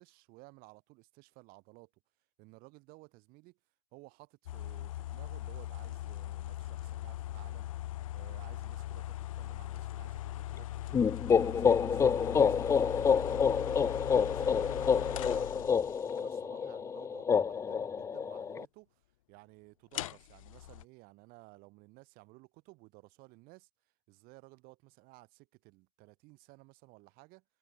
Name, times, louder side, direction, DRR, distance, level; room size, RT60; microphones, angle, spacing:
voice 1, 0.0-1.9 2.4-3.6 3.9-7.7 8.1-11.1 11.4-15.7 16.1-19.0 19.3-23.7 24.1-27.4, right 24 dB, 60° right, 6.2 m, -57 dB
sound 1, 4.5-16.2 19.9-20.8, left 14 dB, 80° left, 1.7 m, -40 dB
sound 2, 10.9-18.6, left 6 dB, 15° left, 0.3 m, -28 dB
hypercardioid pair, 85°, 17 cm